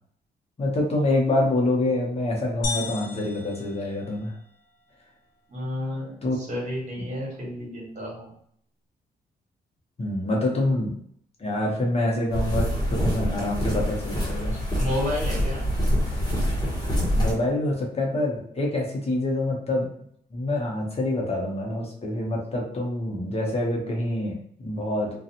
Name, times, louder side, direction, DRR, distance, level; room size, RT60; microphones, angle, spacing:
voice 1, 0.6-4.3 6.2-6.4 10.0-11.0 11.4-14.5 17.1-19.9 20.3-25.2, left 1 dB, 40° left, -1 dB, 0.8 m, -26 dB
sound 1, 2.6-4.6, left 3 dB, 80° left, 1.1 m, -34 dB
voice 2, 5.5-8.3 10.7-10.8 14.5-15.7, left 1 dB, 50° right, -4 dB, 1.4 m, -31 dB
sound 2, 12.3-17.3, equal, 25° left, 1.2 m, -25 dB
2.5 x 2.3 x 2.8 m, 0.66 s
cardioid pair, 85°, 17 cm